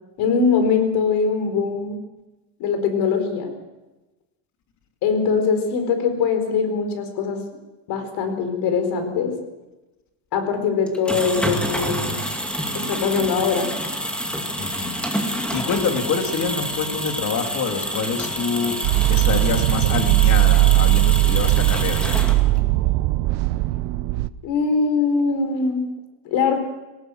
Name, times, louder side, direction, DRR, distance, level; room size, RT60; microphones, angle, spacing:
voice 1, 0.2-2.0 2.6-3.5 5.0-7.4 7.9-9.3 10.3-12.2 12.7-13.7 24.4-25.9 26.2-26.6, left 5 dB, 50° left, 7 dB, 4.5 m, -22 dB
sound 1, 10.9-22.7, equal, ahead, 2.2 m, -28 dB
voice 2, 14.6-18.7 19.1-22.2, left 5 dB, 35° left, 5 dB, 2.9 m, -26 dB
sound 2, 18.8-24.3, right 18 dB, 60° right, 0.8 m, -19 dB
18.5 x 18.5 x 7.8 m, 1.1 s
cardioid pair, 145°, 49 cm